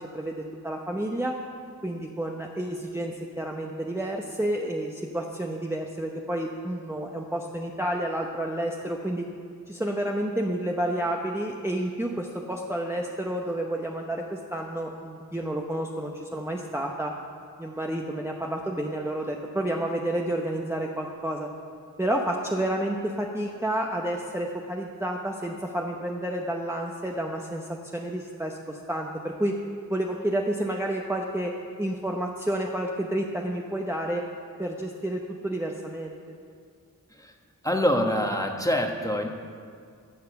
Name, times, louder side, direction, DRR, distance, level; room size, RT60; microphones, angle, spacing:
voice 1, 0.0-1.4 1.8-9.3 9.7-17.1 17.6-21.5 22.0-29.6 29.9-34.3 34.6-36.2, right 1 dB, 5° right, 0 dB, 0.8 m, -30 dB
voice 2, 37.6-39.3, equal, 10° left, 3 dB, 1.2 m, -25 dB
13.0 x 7.5 x 7.0 m, 2.2 s
wide cardioid pair, 45°, 35 cm